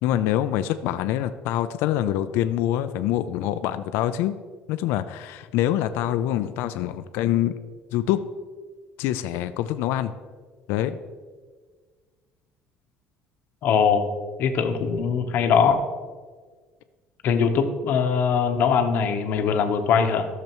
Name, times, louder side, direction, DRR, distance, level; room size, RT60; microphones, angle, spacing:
voice 1, 0.0-4.3 4.7-7.5 7.9-8.2 9.0-10.1 10.7-11.0, left 12 dB, 75° left, 11 dB, 0.4 m, -25 dB
voice 2, 13.6-14.1 14.4-15.9 17.2-20.3, left 6 dB, 55° left, 6 dB, 0.9 m, -21 dB
13.5 x 6.7 x 3.0 m, 1.5 s
cardioid pair, 150°, 4 cm